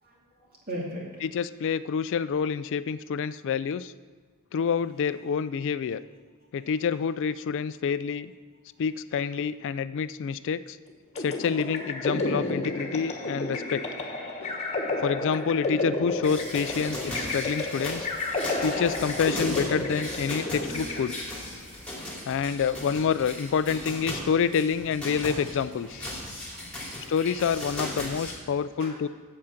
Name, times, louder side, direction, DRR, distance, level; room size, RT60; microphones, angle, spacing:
voice 1, 0.0-1.1 13.0-13.3 14.4-14.6 16.7-16.9 19.5-19.6 22.3-22.5 26.4-27.0 27.8-27.9 28.3-29.1, equal, 45° right, -3 dB, 2.6 m, -41 dB
voice 2, 1.2-3.9 4.5-6.0 6.5-8.3 8.8-10.8 11.2-13.8 15.0-18.1 18.6-21.2 22.3-26.1 27.1-29.1, left 6 dB, 60° left, 15 dB, 0.3 m, -27 dB
sound 1, 11.2-21.6, left 2 dB, 30° left, 1.4 m, -31 dB
sound 2, 16.2-28.4, left 1 dB, 5° left, 2.6 m, -37 dB
8.7 x 7.7 x 5.8 m, 1.5 s
head